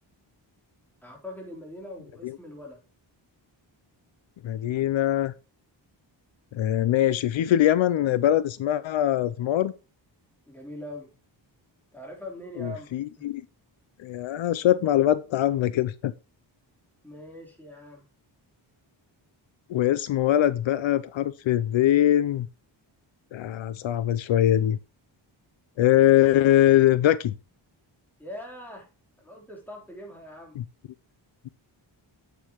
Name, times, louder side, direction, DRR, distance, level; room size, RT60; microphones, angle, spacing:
voice 1, 1.0-2.8 10.5-11.1 11.9-12.9 13.2-13.3 17.0-18.1 20.1-20.3 28.2-28.9 29.2-30.6, left 1 dB, 5° left, 3.3 m, -42 dB
voice 2, 4.4-5.3 6.5-9.7 12.6-13.4 14.0-16.1 19.7-22.5 23.3-24.8 25.8-27.3 30.6-30.7, left 12 dB, 75° left, 0.5 m, -22 dB
8.3 x 8.3 x 3.0 m
wide cardioid pair, 140°, 47 cm